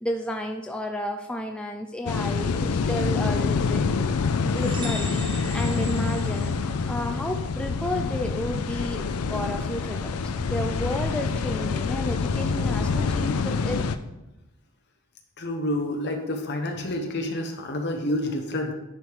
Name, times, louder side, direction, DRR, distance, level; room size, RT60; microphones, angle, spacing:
voice 1, 0.0-4.0 4.5-6.6 6.9-13.8, left 1 dB, 5° left, 3 dB, 0.3 m, -32 dB
sound 1, 2.1-14.0, left 4 dB, 90° left, 0.5 m, -26 dB
sound 2, 4.6-7.1, right 2 dB, 20° right, 0.9 m, -40 dB
voice 2, 15.4-18.7, left 1 dB, 50° left, 4 dB, 1.0 m, -28 dB
10.0 x 3.4 x 4.6 m, 0.95 s
head